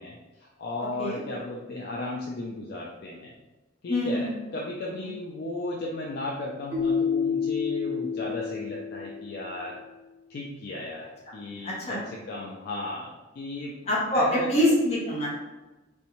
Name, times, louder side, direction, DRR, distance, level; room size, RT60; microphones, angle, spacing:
voice 1, 0.0-3.3 3.8-9.8 10.3-11.1 11.3-13.1 13.4-13.7 14.1-14.5, left 2 dB, 55° left, -3 dB, 0.3 m, -35 dB
voice 2, 3.9-4.3 5.0-5.1 11.6-12.0 13.9-15.4, left 1 dB, 35° left, -5 dB, 0.7 m, -25 dB
Keyboard (musical), 6.7-9.6, left 6 dB, 25° right, 0.8 m, -29 dB
2.6 x 2.1 x 2.8 m, 1.1 s
head